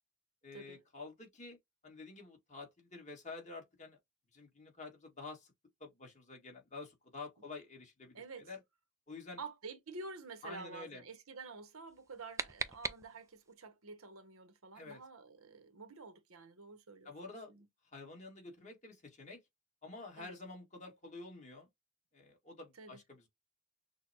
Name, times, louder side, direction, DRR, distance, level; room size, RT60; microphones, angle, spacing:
voice 1, 0.4-1.6 1.8-4.0 4.3-5.5 5.8-8.6 9.1-9.4 10.4-11.0 14.7-15.0 17.0-17.5 17.9-19.4 19.8-21.7 22.1-23.3, left 3 dB, 35° left, 1.9 m, -49 dB
voice 2, 8.1-8.5 9.4-17.7 20.2-20.4 22.8-23.0, right 3 dB, 80° right, 1.0 m, -49 dB
sound 1, 11.9-13.5, right 4 dB, 15° right, 0.4 m, -42 dB
6.2 x 2.2 x 2.8 m
head